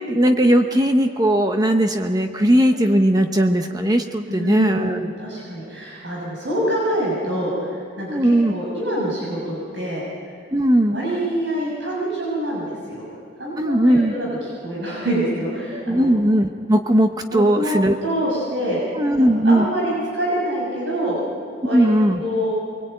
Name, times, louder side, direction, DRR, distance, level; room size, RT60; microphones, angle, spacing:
voice 1, 0.1-5.1 8.1-8.5 10.5-11.0 13.6-14.1 15.7-18.0 18.9-19.7 21.7-22.2, right 1 dB, 20° right, 5 dB, 0.9 m, -18 dB
voice 2, 4.3-10.0 10.9-13.0 13.4-16.1 17.3-17.8 18.0-18.8 19.2-21.2 21.6-21.9 22.2-22.5, right 1 dB, 75° right, -4 dB, 6.6 m, -26 dB
25.0 x 22.5 x 9.1 m, 2.3 s
head